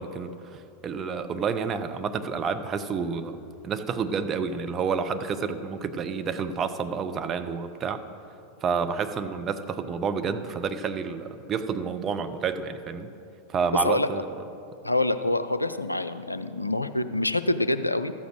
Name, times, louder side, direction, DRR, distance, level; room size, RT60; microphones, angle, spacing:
voice 1, 0.0-3.4 3.6-8.0 8.6-13.1 13.5-14.3, right 5 dB, 25° right, 8 dB, 0.6 m, -29 dB
voice 2, 14.8-18.1, left 2 dB, 85° left, 11 dB, 0.4 m, -26 dB
13.5 x 7.1 x 6.2 m, 2.6 s
figure-of-eight pair, 90°, 0 cm